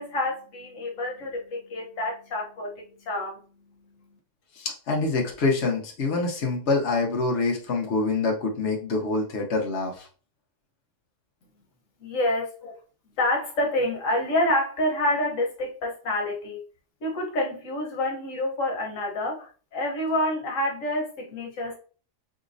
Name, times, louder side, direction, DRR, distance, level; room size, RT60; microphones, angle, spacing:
voice 1, 0.0-3.4 12.0-12.5 13.2-16.6 17.0-21.8, left 1 dB, 90° left, 0 dB, 1.5 m, -27 dB
voice 2, 4.6-10.1 12.6-12.7, left 3 dB, 60° left, 0 dB, 1.2 m, -26 dB
5.2 x 3.1 x 2.6 m, 0.38 s
omnidirectional pair, 1.3 m